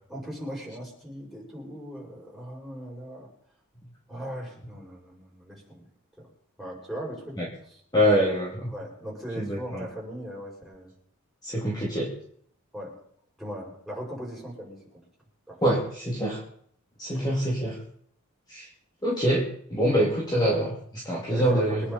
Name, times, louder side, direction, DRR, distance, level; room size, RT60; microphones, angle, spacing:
voice 1, 0.1-3.3 4.1-5.8 6.2-6.3 6.6-7.8 8.7-10.9 12.0-12.1 12.7-13.0 13.4-14.8 15.5-15.6 17.1-17.3 21.3-21.9, equal, ahead, -4 dB, 5.9 m, -39 dB
voice 2, 7.9-8.7 9.4-9.9 11.4-12.1 15.6-16.4 17.0-17.8 18.5-18.7 19.0-21.9, equal, 20° left, -4 dB, 2.5 m, -25 dB
24.0 x 10.0 x 4.2 m, 0.64 s
head